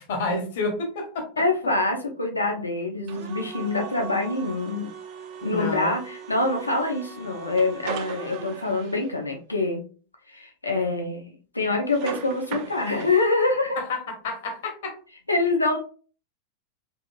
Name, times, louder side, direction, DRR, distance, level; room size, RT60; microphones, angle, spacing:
voice 1, 0.0-1.3 5.4-5.9 13.8-14.9, left 3 dB, 55° left, 2 dB, 0.9 m, -29 dB
voice 2, 1.4-4.9 5.4-9.8 10.3-13.8 15.3-15.8, left 2 dB, 85° left, 2 dB, 0.6 m, -25 dB
sound 1, 3.1-9.1 11.9-13.3, right 6 dB, 45° right, 0.4 m, -38 dB
2.7 x 2.5 x 2.2 m, 0.39 s
figure-of-eight pair, 90°, 0 cm